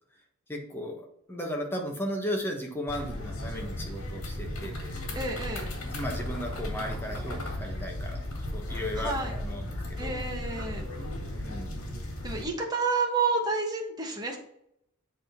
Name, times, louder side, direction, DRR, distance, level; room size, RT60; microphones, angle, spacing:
voice 1, 0.5-4.9 5.8-10.1 11.3-11.8, equal, 10° left, 1 dB, 1.2 m, -36 dB
sound 1, 2.9-12.5, left 1 dB, 80° left, 1.9 m, -35 dB
voice 2, 5.1-5.7 8.9-9.3 10.0-10.9 12.2-14.4, right 4 dB, 20° right, 1 dB, 1.3 m, -30 dB
8.1 x 3.7 x 5.9 m, 0.75 s
head